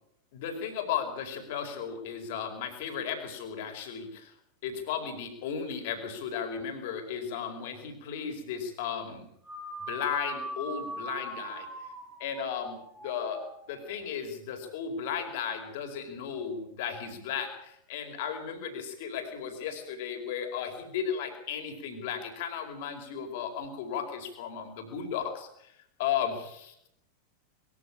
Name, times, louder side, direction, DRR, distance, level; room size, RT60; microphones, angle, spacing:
voice 1, 0.3-4.3 4.6-9.3 9.9-11.7 12.2-13.4 13.7-25.7 26.0-26.7, left 7 dB, 50° left, 6 dB, 4.8 m, -35 dB
sound 1, 9.4-14.0, right 1 dB, 5° right, 4.6 m, -41 dB
22.0 x 14.5 x 8.8 m, 0.74 s
figure-of-eight pair, 90°, 0 cm